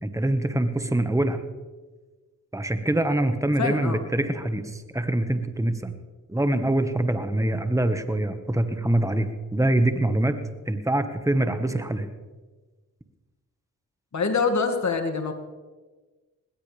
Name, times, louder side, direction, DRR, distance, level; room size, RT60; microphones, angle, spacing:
voice 1, 0.0-1.4 2.5-5.9 6.3-10.4 10.7-12.1, right 1 dB, 10° right, 9 dB, 1.6 m, -24 dB
voice 2, 3.6-4.0 14.1-15.3, left 4 dB, 50° left, 5 dB, 2.5 m, -25 dB
19.5 x 16.5 x 3.5 m, 1.3 s
supercardioid pair, 45°, 37 cm